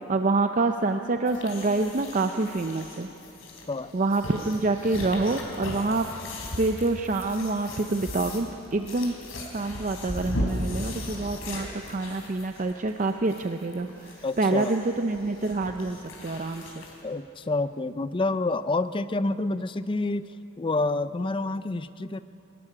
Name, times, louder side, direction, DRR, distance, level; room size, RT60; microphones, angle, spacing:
voice 1, 0.1-3.1 3.9-6.1 6.6-9.1 9.5-16.8, right 3 dB, 35° right, 6 dB, 0.5 m, -27 dB
sound 1, 1.3-17.0, left 1 dB, 70° left, 3.5 m, -37 dB
voice 2, 14.2-14.7 17.0-20.3 20.6-22.2, left 2 dB, 25° left, 13 dB, 0.4 m, -28 dB
21.0 x 13.0 x 9.9 m, 2.9 s
head